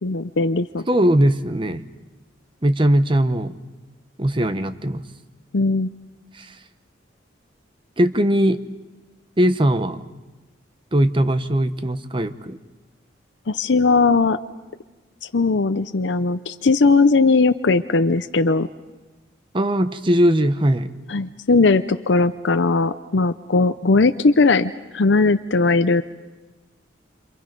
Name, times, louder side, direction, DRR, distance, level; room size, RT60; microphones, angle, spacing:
voice 1, 0.0-0.8 5.5-5.9 13.5-14.4 15.3-18.7 21.1-26.0, left 3 dB, 70° left, 9 dB, 0.7 m, -18 dB
voice 2, 0.9-1.8 2.6-3.5 4.2-5.0 6.4-6.5 8.0-8.6 9.4-10.0 10.9-12.6 19.5-20.9, right 1 dB, 25° right, 11 dB, 0.9 m, -19 dB
29.0 x 26.5 x 5.3 m, 1.2 s
head